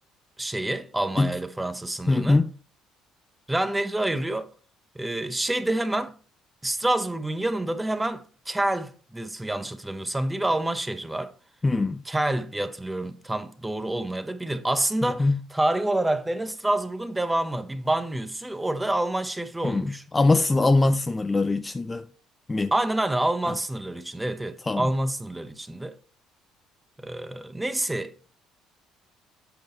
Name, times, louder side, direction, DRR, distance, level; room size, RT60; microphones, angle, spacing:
voice 1, 0.4-2.4 3.5-4.5 4.9-6.2 6.6-11.3 12.1-20.0 22.7-26.0 27.0-28.3, right 1 dB, 10° right, 0.9 m, -27 dB
voice 2, 2.1-2.5 11.6-12.0 15.0-15.4 19.6-22.1 22.5-22.7 24.7-24.9, left 2 dB, 20° left, 0.5 m, -22 dB
8.0 x 5.1 x 4.1 m
supercardioid pair, 70°, 0 cm